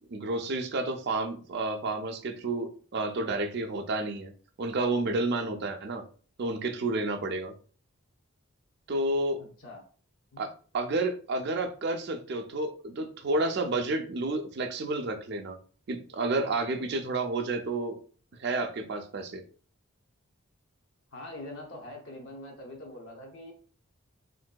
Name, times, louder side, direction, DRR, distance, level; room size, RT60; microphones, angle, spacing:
voice 1, 0.1-4.3 4.6-6.0 6.4-7.5 8.9-9.4 10.4-15.6 15.9-18.0 18.4-19.4, right 2 dB, 50° right, 6 dB, 0.4 m, -30 dB
voice 2, 9.4-9.8 10.3-10.4 21.1-23.5, left 1 dB, 55° left, 0 dB, 0.7 m, -43 dB
3.7 x 2.6 x 2.2 m, 0.42 s
head